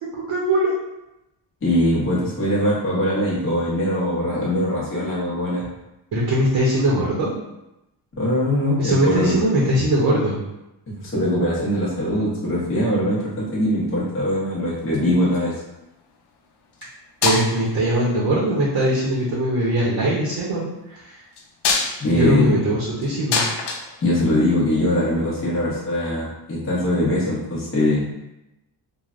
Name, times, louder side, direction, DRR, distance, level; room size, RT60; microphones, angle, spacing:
voice 1, 0.0-0.7 6.1-7.3 8.8-10.4 17.2-21.2 22.1-23.4, right 1 dB, 55° right, -4 dB, 0.7 m, -21 dB
voice 2, 1.6-5.7 8.1-9.4 10.9-15.6 22.0-22.6 24.0-28.1, left 1 dB, 30° left, -7 dB, 0.8 m, -21 dB
sound 1, 14.8-15.6 16.7-16.9 17.2-17.8 18.8-19.2 21.3-24.7 26.1-26.2, left 4 dB, 70° left, 0.5 m, -26 dB
3.2 x 2.1 x 2.4 m, 0.93 s
cardioid pair, 135°, 43 cm